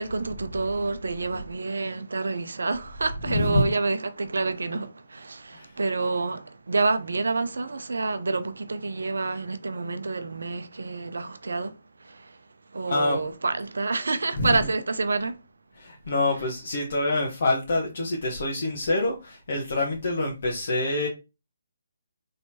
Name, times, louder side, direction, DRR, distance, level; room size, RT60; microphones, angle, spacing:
voice 1, 0.0-12.4 12.7-15.4 16.3-16.6, right 3 dB, 65° right, 0.5 m, -28 dB
voice 2, 3.3-3.7 5.5-5.7 12.9-13.2 14.3-14.5 15.8-21.1, left 2 dB, 55° left, 1.0 m, -26 dB
4.3 x 3.2 x 2.8 m
figure-of-eight pair, 140°, 0 cm